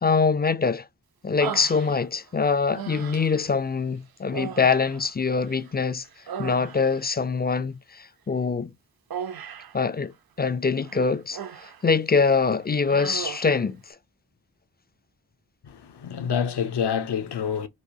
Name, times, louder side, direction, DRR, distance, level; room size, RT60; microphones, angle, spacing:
voice 1, 0.0-0.8 1.2-6.0 6.4-8.7 9.7-13.8, left 5 dB, 25° left, 0.4 m, -24 dB
Human voice, 1.4-2.3 2.7-3.5 4.3-5.7 6.0-7.1 9.1-9.8 10.8-11.8 12.2-12.4 12.8-13.6, right 8 dB, 60° right, 0.6 m, -37 dB
voice 2, 15.7-17.7, left 7 dB, 70° left, 0.7 m, -27 dB
4.6 x 2.4 x 2.7 m
cardioid pair, 55°, 43 cm